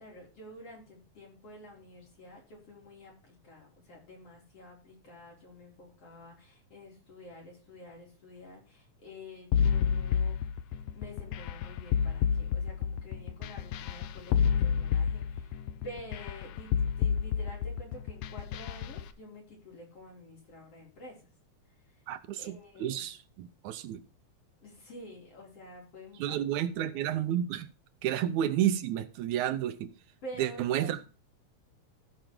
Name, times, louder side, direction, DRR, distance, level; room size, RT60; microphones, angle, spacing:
voice 1, 0.0-10.3 10.9-15.5 15.8-16.7 17.0-21.2 22.4-23.1 24.6-27.4 30.2-31.0, equal, 55° left, 4.7 m, -49 dB
sound 1, 9.5-19.0, left 7 dB, 70° left, 1.7 m, -29 dB
voice 2, 22.1-24.0 26.2-27.7 28.0-29.9 30.4-31.0, right 11 dB, 80° right, 2.2 m, -31 dB
15.0 x 5.1 x 4.5 m
omnidirectional pair, 3.3 m